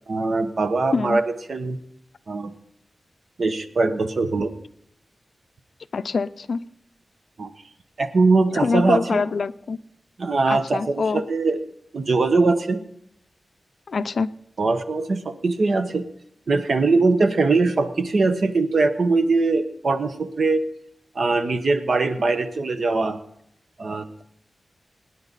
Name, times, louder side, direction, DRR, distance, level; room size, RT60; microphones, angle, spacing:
voice 1, 0.1-1.2 1.5-1.8 2.3-2.5 3.4-4.5 7.4-7.5 8.0-9.2 10.2-11.6 11.9-12.8 14.6-16.0 16.5-20.6 21.1-23.2 23.8-24.2, right 3 dB, 55° right, 1.1 m, -21 dB
voice 2, 5.9-6.6 8.5-9.8 10.5-11.2 13.9-14.3, left 4 dB, 65° left, 0.5 m, -25 dB
25.0 x 9.8 x 4.1 m
wide cardioid pair, 120°, 0 cm